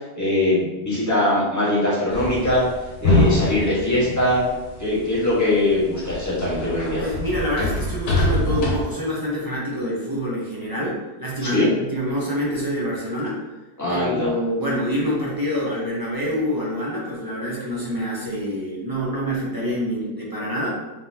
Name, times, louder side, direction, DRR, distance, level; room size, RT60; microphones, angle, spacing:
voice 1, 0.1-2.7 3.0-4.5 4.8-7.0 11.4-11.7 13.8-14.3, left 1 dB, 10° left, -8 dB, 1.1 m, -21 dB
sound 1, 2.1-5.1 5.5-8.8, left 2 dB, 75° left, 1.5 m, -24 dB
voice 2, 7.0-13.4 13.9-20.8, equal, 25° right, -6 dB, 0.4 m, -26 dB
3.9 x 3.8 x 2.8 m, 1.1 s
omnidirectional pair, 1.9 m